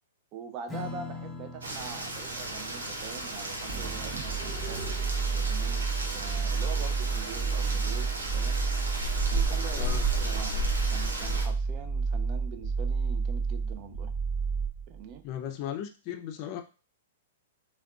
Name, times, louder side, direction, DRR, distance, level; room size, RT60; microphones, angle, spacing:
voice 1, 0.3-4.9 5.3-5.8 6.1-8.6 9.3-14.1 14.9-15.2, right 7 dB, 40° right, 8 dB, 0.4 m, -44 dB
Strum, 0.7-7.5, left 3 dB, ahead, 0.6 m, -45 dB
Rain, 1.6-11.4, right 1 dB, 90° right, 0.7 m, -34 dB
sound 1, 3.7-15.1, right 4 dB, 60° right, 0.8 m, -30 dB
voice 2, 9.8-10.1 15.2-16.6, left 10 dB, 45° left, 7 dB, 0.4 m, -36 dB
3.5 x 2.2 x 2.3 m, 0.34 s
hypercardioid pair, 115°, 0 cm